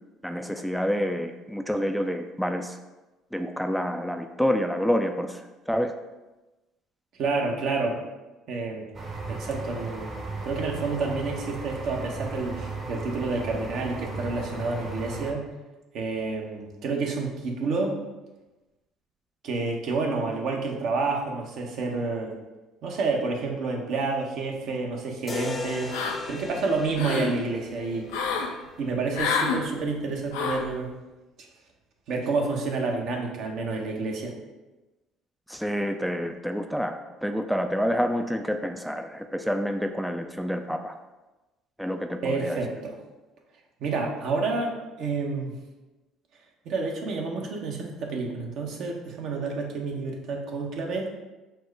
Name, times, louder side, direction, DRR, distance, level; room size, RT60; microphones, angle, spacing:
voice 1, 0.2-2.8 3.3-5.9 35.5-40.9 41.8-42.6, equal, ahead, 6 dB, 0.3 m, -28 dB
voice 2, 7.2-8.0 8.5-8.9 9.3-10.1 10.4-15.4 15.9-18.0 19.4-22.3 22.8-26.0 26.3-28.3 28.8-30.9 32.1-34.3 42.2-43.0 43.8-45.5 46.6-51.1, right 3 dB, 65° right, 1 dB, 0.8 m, -29 dB
sound 1, 8.9-15.3, right 3 dB, 40° right, 0.9 m, -35 dB
sound 2, 25.3-29.3, left 3 dB, 35° left, 0.6 m, -38 dB
sound 3, 25.9-26.4 26.8-27.3 28.1-28.5 29.1-29.6 30.3-30.7, left 5 dB, 85° left, 0.5 m, -28 dB
4.4 x 2.1 x 4.6 m, 1.1 s
hypercardioid pair, 70°, 0 cm